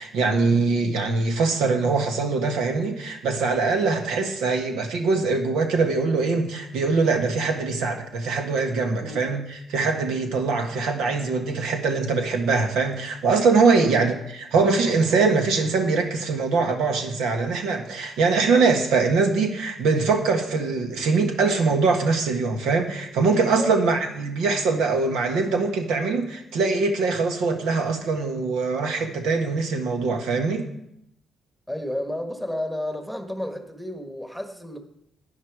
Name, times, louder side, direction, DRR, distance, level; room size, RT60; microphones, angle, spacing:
voice 1, 0.0-14.1 14.5-30.7, right 4 dB, 85° right, 1.5 m, -22 dB
voice 2, 8.9-9.4 13.7-14.1 23.6-23.8 31.7-34.8, left 1 dB, ahead, 1.4 m, -32 dB
11.0 x 9.7 x 4.8 m
cardioid pair, 90°, 0 cm